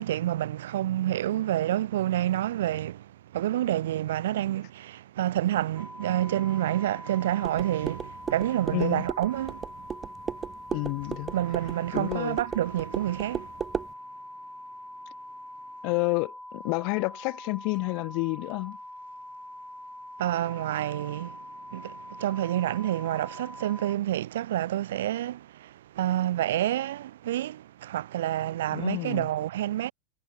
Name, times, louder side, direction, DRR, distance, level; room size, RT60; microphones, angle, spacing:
voice 1, 0.0-9.7 11.3-13.5 20.2-29.9, right 13 dB, 65° right, 1.4 m, -28 dB
sound 1, 5.8-24.0, left 1 dB, 5° left, 6.2 m, -44 dB
sound 2, 7.4-13.9, right 7 dB, 25° right, 2.0 m, -36 dB
voice 2, 8.7-9.0 10.7-11.3 11.9-12.4 15.8-18.8 28.7-29.3, left 36 dB, 50° left, 1.9 m, -29 dB
figure-of-eight pair, 90°, 0 cm